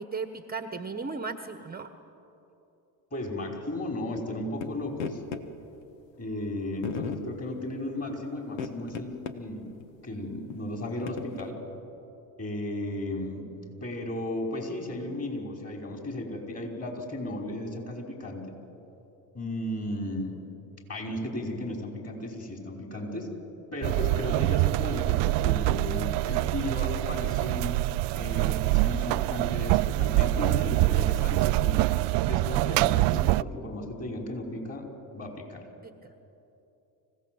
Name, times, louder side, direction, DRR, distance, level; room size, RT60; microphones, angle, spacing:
voice 1, 0.0-1.9 35.8-36.1, right 4 dB, 20° right, 9 dB, 1.1 m, -36 dB
voice 2, 3.1-5.2 6.2-9.7 10.0-11.6 12.4-13.5 13.8-18.4 19.3-20.4 20.9-23.3 23.7-27.8 28.1-31.9 32.2-34.9 35.1-35.6, left 1 dB, 30° left, 2 dB, 5.3 m, -35 dB
sound 1, 4.6-4.7 5.0-5.4 6.3-6.4 6.8-7.2 8.5-9.4 9.8-9.9 10.5-11.5, left 7 dB, 85° left, 1.3 m, -36 dB
sound 2, 23.8-33.4, right 18 dB, 60° right, 0.5 m, -25 dB
25.5 x 16.0 x 7.9 m, 2.9 s
hypercardioid pair, 70°, 49 cm